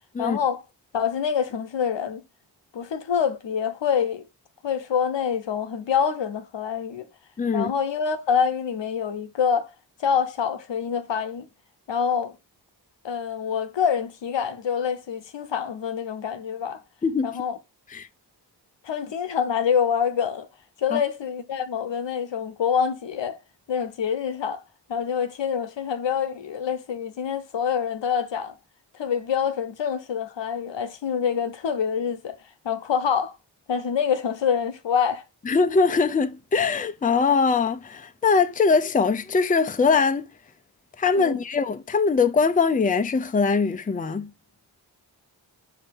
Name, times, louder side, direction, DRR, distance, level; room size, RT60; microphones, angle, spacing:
voice 1, 0.2-0.6 0.9-2.2 2.7-4.2 4.6-7.1 7.5-9.7 10.0-11.5 11.9-12.3 13.0-16.8 17.2-17.6 18.8-20.5 20.8-23.4 23.7-24.6 24.9-28.6 29.0-32.3 32.6-33.3 33.7-35.2 41.1-41.4, left 7 dB, 80° left, 0.9 m, -26 dB
voice 2, 7.4-7.7 17.0-17.3 17.9-18.1 20.9-21.0 35.5-40.3 41.0-44.3, left 4 dB, 20° left, 0.5 m, -22 dB
6.6 x 2.8 x 5.2 m
cardioid pair, 60°, 43 cm